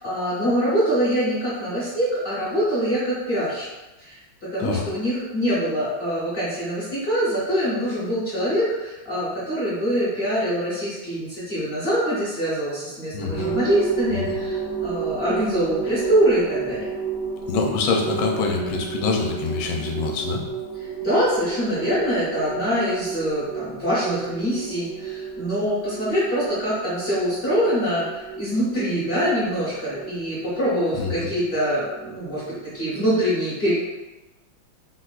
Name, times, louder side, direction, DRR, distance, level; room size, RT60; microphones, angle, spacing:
voice 1, 0.0-3.7 4.0-16.8 20.8-33.7, equal, 55° left, -10 dB, 0.6 m, -24 dB
voice 2, 13.1-13.5 14.1-14.4 17.5-20.4 31.0-31.3, left 4 dB, 80° left, 1 dB, 1.3 m, -25 dB
sound 1, 13.3-33.1, right 6 dB, 70° right, 0.8 m, -33 dB
4.3 x 2.1 x 2.3 m, 1.1 s
omnidirectional pair, 2.2 m